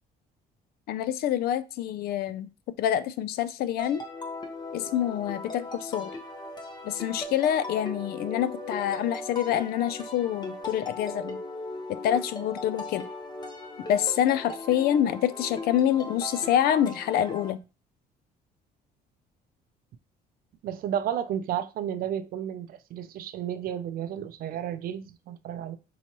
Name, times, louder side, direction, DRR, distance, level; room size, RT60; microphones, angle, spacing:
voice 1, 0.9-2.5 2.8-4.0 4.7-6.1 6.8-11.4 11.9-13.1 13.9-17.6, left 10 dB, 65° left, 0.4 m, -26 dB
sound 1, 3.8-17.5, left 2 dB, 25° left, 0.8 m, -38 dB
voice 2, 20.6-25.8, right 10 dB, 60° right, 0.5 m, -32 dB
4.6 x 2.8 x 2.9 m
cardioid pair, 110°, 17 cm